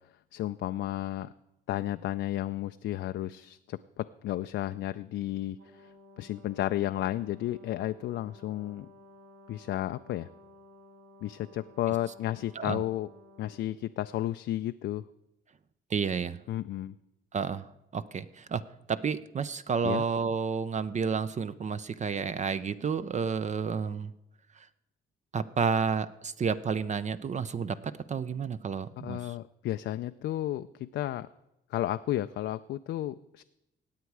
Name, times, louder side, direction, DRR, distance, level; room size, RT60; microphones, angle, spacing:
voice 1, 0.3-1.3 1.7-8.9 9.5-10.3 11.2-13.1 13.4-15.0 16.5-16.9 19.8-20.0 29.0-31.3 31.7-33.4, left 14 dB, 70° left, 10 dB, 0.4 m, -33 dB
Brass instrument, 5.6-14.3, left 1 dB, 90° right, 2.7 m, -55 dB
voice 2, 15.9-16.4 17.3-18.6 18.9-24.1 24.6-24.7 25.3-29.3, right 6 dB, 35° right, 14 dB, 0.5 m, -31 dB
17.5 x 8.3 x 4.7 m, 0.90 s
cardioid pair, 90°, 20 cm